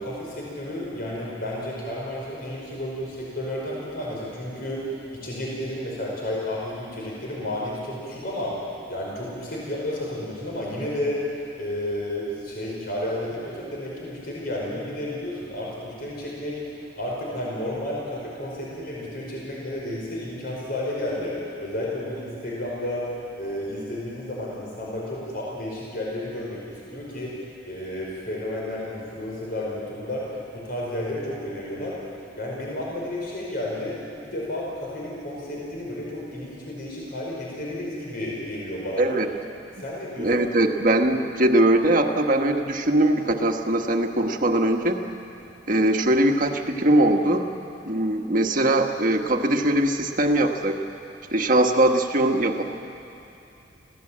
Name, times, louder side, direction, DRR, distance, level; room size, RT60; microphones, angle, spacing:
voice 1, 0.0-32.0 32.4-34.0 34.2-39.1 39.8-40.4, left 1 dB, 50° left, -4 dB, 5.1 m, -32 dB
voice 2, 39.0-39.3 40.2-45.0 45.7-47.5 47.8-50.8 51.3-52.6, right 1 dB, 45° right, 4 dB, 1.4 m, -21 dB
26.0 x 16.5 x 8.7 m, 2.7 s
head